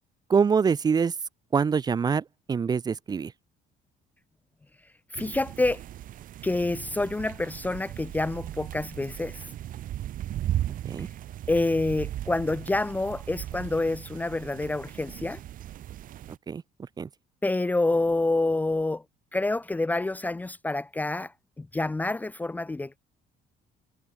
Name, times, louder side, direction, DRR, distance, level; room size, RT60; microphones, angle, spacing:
voice 1, 0.3-1.1 1.5-3.3 10.7-11.1 16.5-16.6 17.0-17.1, right 6 dB, 25° right, 1.1 m, -25 dB
voice 2, 5.1-5.8 6.4-9.4 11.5-15.4 17.4-19.0 19.3-21.3 21.6-23.0, left 2 dB, 10° left, 0.9 m, -27 dB
sound 1, 5.1-16.4, right 12 dB, 55° right, 5.1 m, -37 dB
cardioid pair, 165°, 17 cm